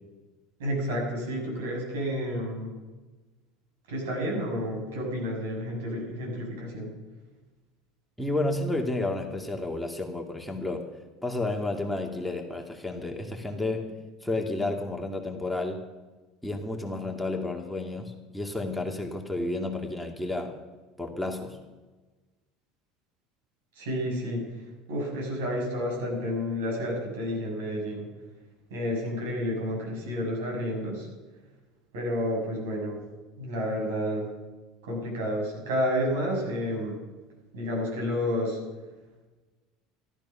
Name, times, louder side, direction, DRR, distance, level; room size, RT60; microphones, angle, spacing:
voice 1, 0.6-2.7 3.9-6.9 23.8-24.4 24.9-28.1 28.7-31.1 31.9-33.0 33.4-34.3 34.8-37.0 37.5-38.6, equal, 80° right, -1 dB, 6.5 m, -30 dB
voice 2, 8.2-10.8 11.2-15.8 16.4-20.5 21.0-21.6, left 2 dB, 5° left, 1 dB, 2.2 m, -31 dB
13.5 x 13.0 x 5.8 m, 1.2 s
hypercardioid pair, 85°, 0 cm